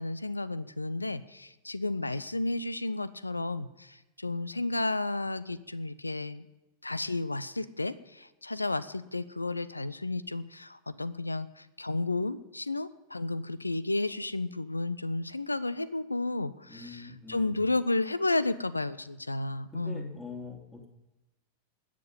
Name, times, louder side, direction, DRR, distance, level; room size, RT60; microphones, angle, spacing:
voice 1, 0.0-6.5 6.8-20.2, left 2 dB, 80° left, 17 dB, 0.6 m, -32 dB
voice 2, 16.7-17.6 19.7-20.9, left 3 dB, 10° left, 1 dB, 2.9 m, -44 dB
20.5 x 7.7 x 5.5 m, 1.0 s
figure-of-eight pair, 90°, 0 cm